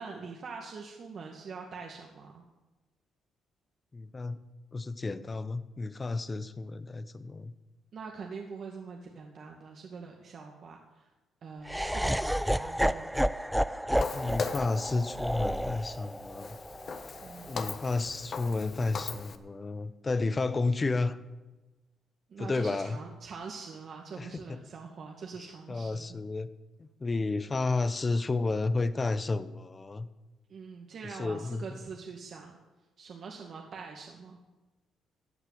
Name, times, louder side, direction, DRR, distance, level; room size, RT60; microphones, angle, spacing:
voice 1, 0.0-2.4 7.9-11.1 11.4-13.1 17.2-17.5 22.3-26.2 30.5-32.5 33.0-34.4, right 5 dB, 55° right, 1 dB, 2.0 m, -44 dB
voice 2, 3.9-4.4 4.7-7.5 14.1-16.6 17.4-21.2 22.4-23.0 24.2-24.6 25.7-26.5 26.8-30.1 31.0-31.6, left 3 dB, 30° left, 14 dB, 0.9 m, -31 dB
Laughter, 11.7-17.8, equal, ahead, 0.5 m, -31 dB
Walk footsteps, 14.0-19.4, left 5 dB, 50° left, 1.2 m, -39 dB
15.0 x 9.1 x 7.7 m, 1.1 s
cardioid pair, 90°, 0 cm